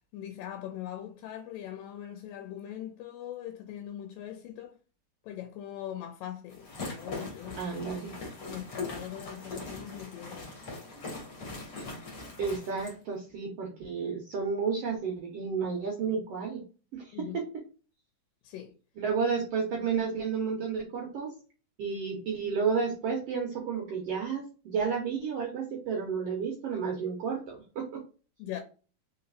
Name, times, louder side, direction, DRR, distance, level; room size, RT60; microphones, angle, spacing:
voice 1, 0.1-4.8 5.2-7.6 8.4-10.5 17.1-17.4 18.4-18.7 28.4-28.6, left 11 dB, 85° left, 2.3 m, -41 dB
sound 1, 6.5-13.0, left 3 dB, 40° left, 1.7 m, -41 dB
voice 2, 7.6-8.1 12.4-16.6 16.9-17.4 19.0-21.3 21.8-28.0, right 5 dB, 75° right, 1.4 m, -31 dB
4.5 x 3.9 x 2.4 m
omnidirectional pair, 3.9 m